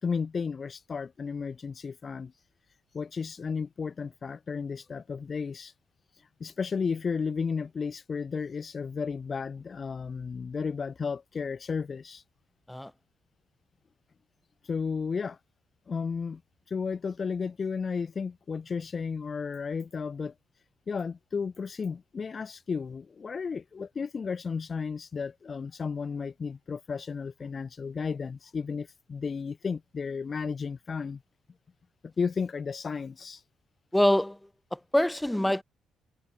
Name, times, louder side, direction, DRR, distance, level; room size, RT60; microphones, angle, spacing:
voice 1, 0.0-2.3 2.9-5.7 6.4-12.2 14.6-15.4 15.9-16.4 16.7-20.3 20.9-31.2 32.0-33.4, left 5 dB, 40° left, 4.1 m, -33 dB
voice 2, 33.9-34.4 34.7-35.6, left 1 dB, 5° left, 6.4 m, -25 dB
cardioid pair, 90°, 0 cm